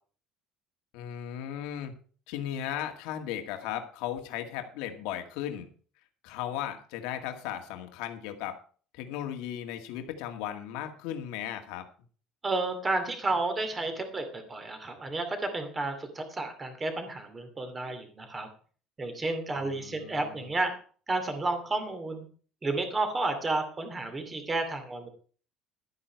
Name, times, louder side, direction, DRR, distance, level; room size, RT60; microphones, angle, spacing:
voice 1, 0.9-1.9 2.3-5.7 6.2-8.6 8.9-11.8 19.5-20.5, left 10 dB, 90° left, 5 dB, 2.0 m, -36 dB
voice 2, 12.4-18.5 19.0-20.7 21.1-22.3 22.6-25.1, right 2 dB, 15° right, 7 dB, 2.5 m, -31 dB
12.5 x 9.8 x 4.6 m, 0.41 s
cardioid pair, 170°, 0 cm